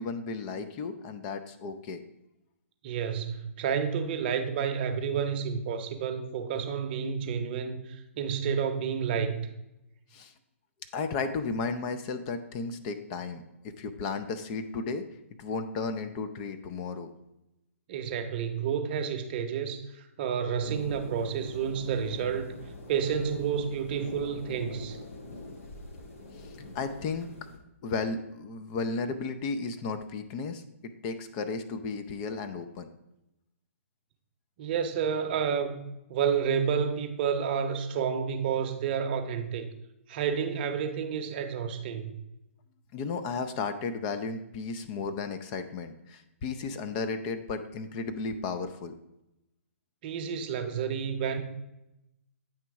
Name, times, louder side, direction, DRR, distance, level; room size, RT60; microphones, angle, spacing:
voice 1, 0.0-2.0 10.1-10.3 10.9-15.1 15.4-17.1 26.3-27.3 27.8-32.9 42.9-48.9, left 4 dB, 30° left, 8 dB, 0.4 m, -34 dB
voice 2, 2.8-9.5 17.9-22.5 22.9-25.0 34.6-39.7 40.1-42.1 50.0-51.4, right 7 dB, 40° right, 7 dB, 0.7 m, -30 dB
sound 1, 20.6-27.6, left 2 dB, 75° left, 1.1 m, -44 dB
8.6 x 3.0 x 4.6 m, 0.89 s
hypercardioid pair, 140°, 8 cm